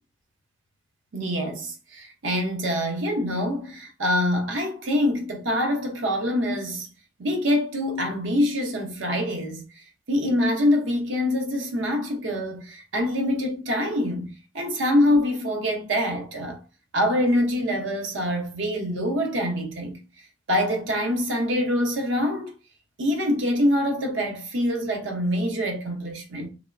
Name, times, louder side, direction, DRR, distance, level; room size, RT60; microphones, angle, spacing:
voice 1, 1.1-6.9 7.2-9.6 10.1-16.6 16.9-20.0 20.5-22.5 23.0-26.5, left 1 dB, 80° right, 0.7 m, -25 dB
2.9 x 2.0 x 2.4 m
head